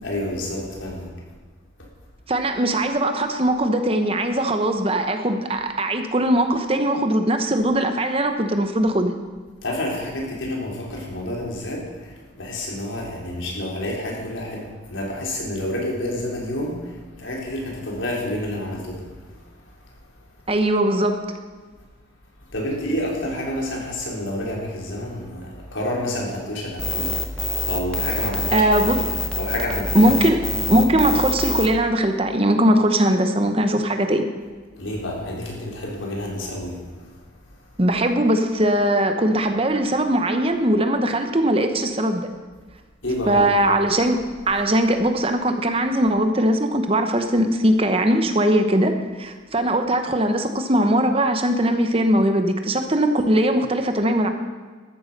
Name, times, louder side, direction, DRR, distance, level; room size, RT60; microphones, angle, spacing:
voice 1, 0.0-1.1 9.6-19.0 22.5-27.4 27.7-28.7 29.0-30.1 34.8-36.8 43.0-43.5, left 1 dB, 75° left, -2 dB, 3.9 m, -29 dB
voice 2, 2.3-9.1 20.5-21.2 28.5-29.0 29.9-30.4 30.7-34.2 37.8-42.2 43.3-44.2 44.5-54.3, right 1 dB, 30° right, 7 dB, 1.0 m, -20 dB
sound 1, 26.8-31.7, left 2 dB, 5° left, 1.0 m, -26 dB
13.5 x 9.5 x 6.7 m, 1.5 s
head